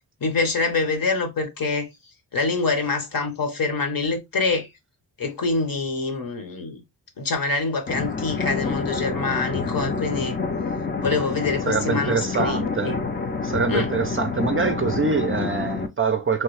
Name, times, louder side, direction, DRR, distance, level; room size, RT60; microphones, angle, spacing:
voice 1, 0.2-1.9 2.3-4.7 5.2-6.8 7.2-10.4 11.0-13.0 13.7-13.9, left 3 dB, 55° left, 1.0 m, -25 dB
sound 1, 7.9-15.9, left 4 dB, 25° left, 0.5 m, -28 dB
voice 2, 11.7-13.0 13.4-16.4, right 4 dB, 30° right, 0.4 m, -24 dB
3.2 x 2.3 x 3.1 m
wide cardioid pair, 95°, 42 cm